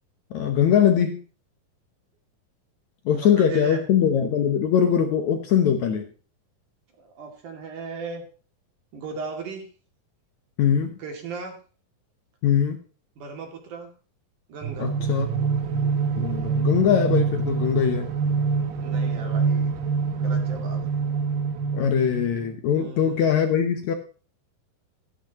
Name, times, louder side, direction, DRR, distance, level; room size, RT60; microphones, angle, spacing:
voice 1, 0.3-1.2 3.1-6.0 10.6-11.0 12.4-12.8 14.8-15.3 16.2-18.1 21.7-23.9, left 8 dB, 65° left, 2.0 m, -21 dB
voice 2, 3.1-3.8 7.0-8.3 8.9-9.7 11.0-11.5 13.2-13.9 14.5-14.9 18.8-19.7 20.2-20.9 22.7-23.3, right 4 dB, 60° right, 3.8 m, -37 dB
sound 1, 14.6-22.5, right 5 dB, 75° right, 2.9 m, -25 dB
13.5 x 12.5 x 2.9 m
omnidirectional pair, 4.1 m